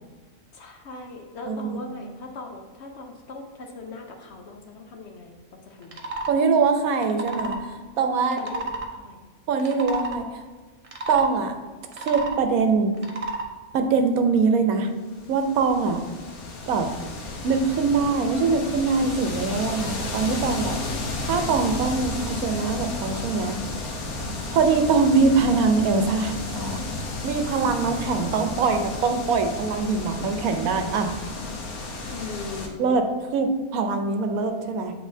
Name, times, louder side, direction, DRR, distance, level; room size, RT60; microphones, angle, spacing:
voice 1, 0.5-6.1 8.3-9.2 32.1-33.1, left 3 dB, 60° left, 2 dB, 0.8 m, -39 dB
voice 2, 1.5-1.8 6.3-8.4 9.5-10.4 11.1-11.5 12.0-12.9 13.7-14.9 15.3-16.0 16.7-16.9 17.4-20.8 21.2-23.6 24.5-26.8 27.2-31.1 32.8-33.1 33.3-34.9, right 4 dB, 80° right, 6 dB, 1.1 m, -23 dB
sound 1, 5.8-6.3 7.0-7.6 8.3-8.9 9.5-10.2 10.8-11.3 11.8-12.4 13.0-13.5, right 3 dB, 40° right, 0.5 m, -31 dB
sound 2, 15.1-32.7, left 2 dB, 85° left, 1.4 m, -33 dB
8.1 x 4.6 x 2.7 m, 1.4 s
omnidirectional pair, 1.5 m